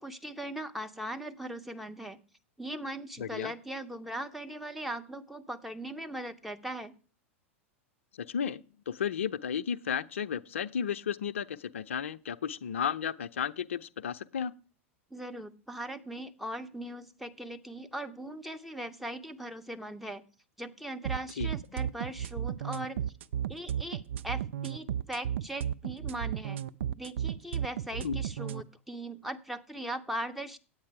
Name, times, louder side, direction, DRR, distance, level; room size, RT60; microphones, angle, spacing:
voice 1, 0.0-2.2 2.6-6.9 15.1-20.2 20.6-23.0 23.5-26.6 26.9-30.6, right 1 dB, ahead, 0.7 m, -39 dB
voice 2, 3.2-3.5 8.1-14.5 21.4-21.5 28.0-28.2, left 7 dB, 70° left, 0.5 m, -33 dB
sound 1, 21.0-28.6, right 9 dB, 65° right, 0.4 m, -33 dB
9.5 x 8.6 x 4.8 m
figure-of-eight pair, 90°, 7 cm